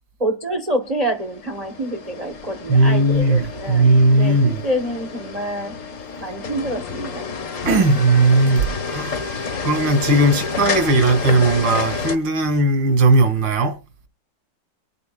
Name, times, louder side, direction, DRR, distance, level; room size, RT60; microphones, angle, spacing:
voice 1, 0.2-5.7 6.2-7.6, right 1 dB, 40° right, 0.5 m, -27 dB
sound 1, 1.0-12.2, left 5 dB, 50° left, 1.3 m, -30 dB
voice 2, 2.7-4.6 7.6-9.2 9.6-13.7, right 2 dB, 90° right, 2.4 m, -17 dB
23.5 x 9.4 x 2.2 m
omnidirectional pair, 2.0 m